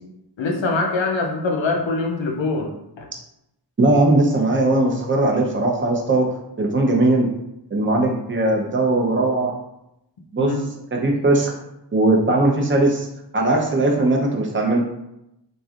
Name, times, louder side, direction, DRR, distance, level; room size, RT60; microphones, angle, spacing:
voice 1, 0.4-2.7 3.0-3.1 10.4-10.6, left 3 dB, 85° left, 1 dB, 0.6 m, -23 dB
voice 2, 3.8-6.3 6.6-7.3 7.7-9.5 10.3-10.5 10.9-11.6 11.9-13.1 13.3-14.8, right 2 dB, 25° right, 0 dB, 0.6 m, -19 dB
3.2 x 2.6 x 2.4 m, 0.86 s
wide cardioid pair, 45°, 44 cm